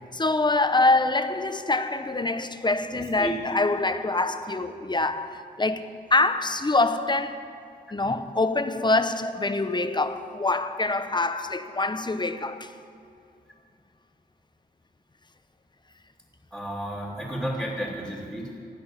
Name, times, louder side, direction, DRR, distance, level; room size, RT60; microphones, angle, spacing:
voice 1, 0.1-7.5 7.9-12.7, left 2 dB, 25° left, 0.8 m, -25 dB
voice 2, 2.9-3.3 16.5-18.5, right 1 dB, 5° right, 2.5 m, -32 dB
16.0 x 6.2 x 9.8 m
cardioid pair, 65°, 18 cm